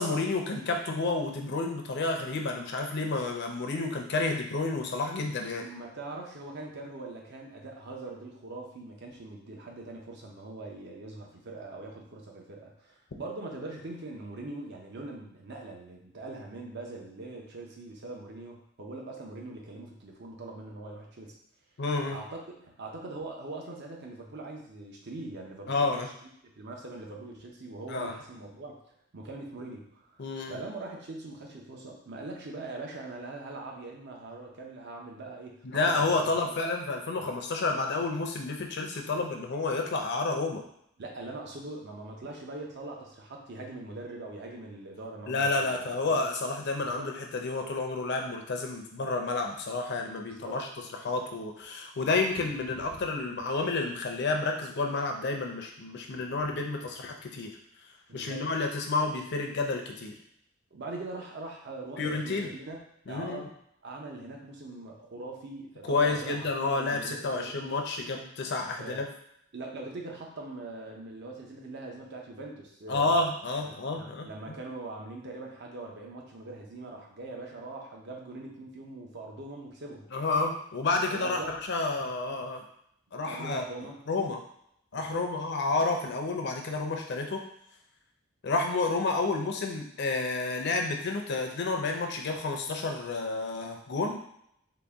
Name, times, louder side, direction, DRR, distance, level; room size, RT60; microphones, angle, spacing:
voice 1, 0.0-5.6 21.8-22.2 25.7-26.1 27.9-28.1 30.2-30.6 35.6-40.6 45.3-50.7 51.0-57.6 58.1-60.1 62.0-62.5 63.1-63.5 65.8-69.0 72.9-74.6 80.1-82.6 83.1-83.6 84.1-84.4 84.9-87.4 88.4-94.2, left 3 dB, 55° left, 2 dB, 0.5 m, -30 dB
voice 2, 5.6-21.4 22.1-26.3 26.6-28.8 29.1-30.2 30.5-36.5 41.0-46.2 46.9-47.1 50.3-50.6 58.1-58.4 60.7-62.8 63.1-63.5 63.8-67.7 68.8-69.0 69.5-73.2 73.6-80.1 81.1-81.5 83.2-84.0 84.9-85.3, right 2 dB, 55° right, 0 dB, 0.7 m, -42 dB
3.9 x 2.2 x 3.5 m, 0.73 s
head